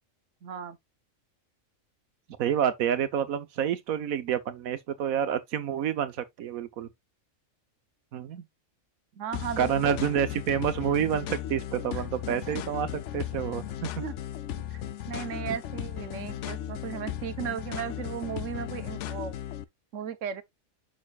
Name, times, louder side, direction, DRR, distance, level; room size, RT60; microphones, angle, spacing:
voice 1, 0.4-0.8 9.2-10.0 11.9-12.0 12.5-12.6 14.0-14.1 14.7-19.3 19.9-20.4, right 8 dB, 65° right, 1.2 m, -36 dB
voice 2, 2.4-6.9 8.1-8.4 9.6-14.0, right 9 dB, 85° right, 1.3 m, -28 dB
sound 1, 9.3-19.6, left 11 dB, 65° left, 0.8 m, -36 dB
6.4 x 6.3 x 2.3 m
omnidirectional pair, 1.4 m